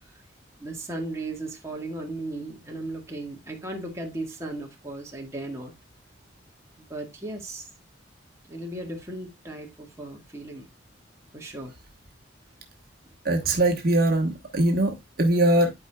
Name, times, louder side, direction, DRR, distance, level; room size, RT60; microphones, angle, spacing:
voice 1, 0.6-5.7 6.8-7.7 8.5-10.7 11.3-11.7, right 2 dB, 15° right, 1.6 m, -36 dB
voice 2, 13.2-15.7, right 1 dB, 50° right, 1.2 m, -22 dB
11.5 x 4.7 x 2.3 m
head